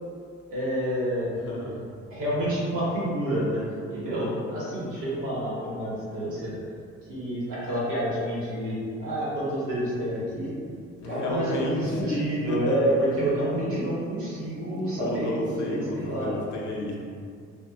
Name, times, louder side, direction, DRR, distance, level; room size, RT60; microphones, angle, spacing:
voice 1, 0.5-1.3 2.1-3.6 3.9-6.5 7.0-10.5 11.1-16.4, equal, 80° right, -8 dB, 1.2 m, -28 dB
voice 2, 1.4-1.8 11.0-12.8 15.0-17.0, left 1 dB, 75° left, -3 dB, 0.6 m, -31 dB
2.9 x 2.4 x 2.3 m, 2.2 s
cardioid pair, 90°, 30 cm